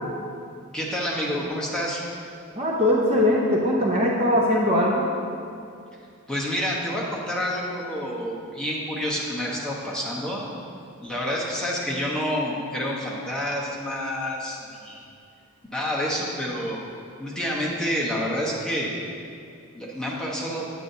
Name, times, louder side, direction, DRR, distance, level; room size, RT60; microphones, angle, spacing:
voice 1, 0.7-2.0 6.3-10.4 11.0-15.0 15.7-16.9 17.2-18.9 19.7-20.6, equal, 5° left, -5 dB, 1.0 m, -28 dB
voice 2, 2.6-5.1, left 1 dB, 30° right, -3 dB, 0.6 m, -21 dB
8.9 x 8.3 x 2.7 m, 2.4 s
head